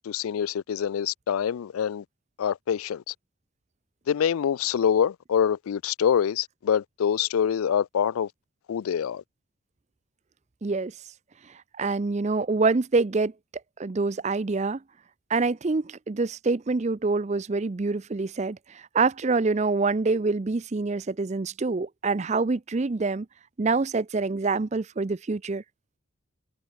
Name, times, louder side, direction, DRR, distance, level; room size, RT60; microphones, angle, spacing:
voice 1, 0.1-2.0 2.4-3.1 4.1-8.3 8.7-9.2, left 8 dB, 85° left, 0.4 m, -25 dB
voice 2, 10.6-10.9 11.8-13.3 13.8-14.8 15.3-23.3 23.6-25.6, right 3 dB, 35° right, 0.5 m, -26 dB
head